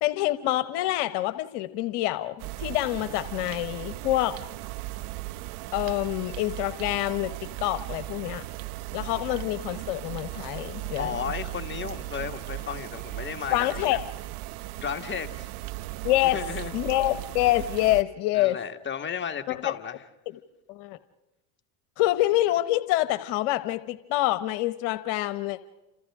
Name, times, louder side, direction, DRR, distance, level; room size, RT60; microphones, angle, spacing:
voice 1, 0.0-4.3 5.7-8.4 8.9-11.2 13.5-14.0 16.0-16.4 16.7-18.6 19.5-19.7 20.7-21.0 22.0-25.6, left 16 dB, 65° left, 13 dB, 1.1 m, -26 dB
sound 1, 2.4-18.0, right 17 dB, 65° right, 0.9 m, -37 dB
voice 2, 11.0-14.0 14.8-15.5 16.2-16.8 18.3-20.0, left 7 dB, 25° left, 5 dB, 1.8 m, -34 dB
29.5 x 27.5 x 3.7 m, 1.0 s
supercardioid pair, 90°, 44 cm